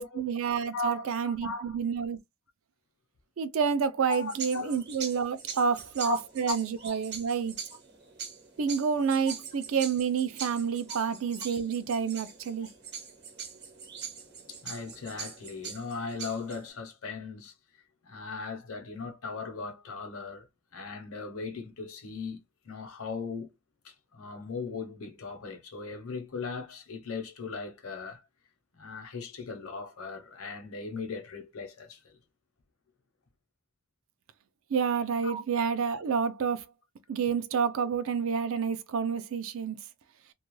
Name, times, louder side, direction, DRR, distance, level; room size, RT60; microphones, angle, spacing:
voice 1, 0.0-2.2 3.4-7.6 8.6-12.7 34.7-36.7 37.1-39.8, right 6 dB, 70° right, 0.4 m, -29 dB
voice 2, 0.7-1.8 4.1-4.8 5.6-5.8 6.0-6.2 6.5-6.6 6.8-6.9 14.5-17.5 18.0-20.5 20.7-23.5 23.8-28.2 28.8-32.1 35.2-35.4, left 4 dB, 80° left, 0.8 m, -38 dB
sound 1, 4.1-16.7, right 6 dB, 50° right, 0.9 m, -42 dB
2.3 x 2.2 x 3.1 m
head